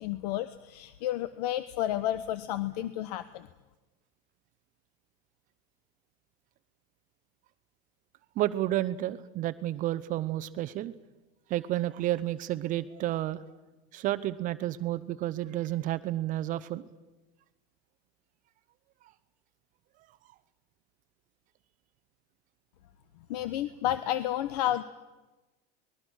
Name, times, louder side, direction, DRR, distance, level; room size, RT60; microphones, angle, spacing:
voice 1, 0.0-3.5 23.3-24.8, left 13 dB, 85° left, 14 dB, 0.9 m, -31 dB
voice 2, 8.4-10.9 11.5-13.4 13.9-16.8, right 14 dB, 40° right, 14 dB, 0.7 m, -31 dB
26.5 x 21.0 x 6.3 m, 1.1 s
supercardioid pair, 140°, 20 cm